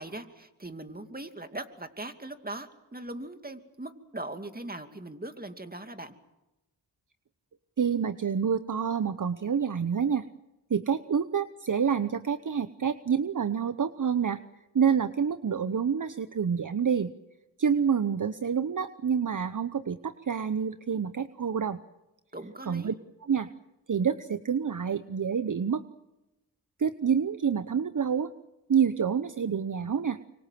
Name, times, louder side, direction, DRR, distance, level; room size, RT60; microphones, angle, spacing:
voice 1, 0.0-6.1 22.3-22.9, right 2 dB, 20° right, 7 dB, 2.5 m, -40 dB
voice 2, 7.8-10.3 10.7-14.4 14.7-17.1 17.6-21.8 22.7-22.9 23.2-23.5 23.9-25.8 26.8-28.3 28.7-30.2, right 7 dB, 50° right, 12 dB, 0.9 m, -27 dB
25.5 x 24.5 x 7.6 m, 0.97 s
cardioid pair, 40°, 41 cm